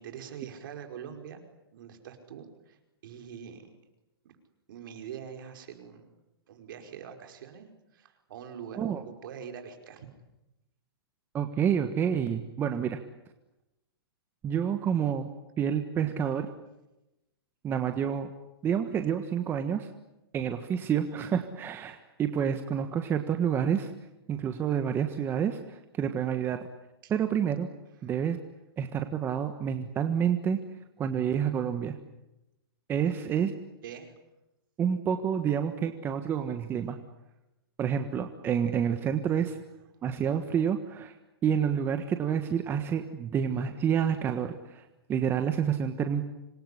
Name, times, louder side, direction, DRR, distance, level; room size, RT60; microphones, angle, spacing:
voice 1, 0.0-1.4 1.7-2.8 3.0-3.8 4.2-4.3 4.7-6.2 6.5-10.1 27.0-27.1 28.0-28.1 33.8-34.1 39.3-39.4, right 8 dB, 55° right, 6 dB, 5.2 m, -44 dB
voice 2, 11.3-13.0 14.4-15.3 15.6-16.5 17.6-18.3 18.6-19.9 20.3-23.9 24.3-26.7 27.1-27.7 28.0-28.4 28.8-30.6 31.0-32.0 32.9-33.5 34.8-37.0 37.8-39.6 40.0-41.1 41.4-44.8 45.1-46.2, right 8 dB, 15° right, 7 dB, 1.4 m, -28 dB
26.5 x 21.0 x 10.0 m, 0.94 s
hypercardioid pair, 155°, 13 cm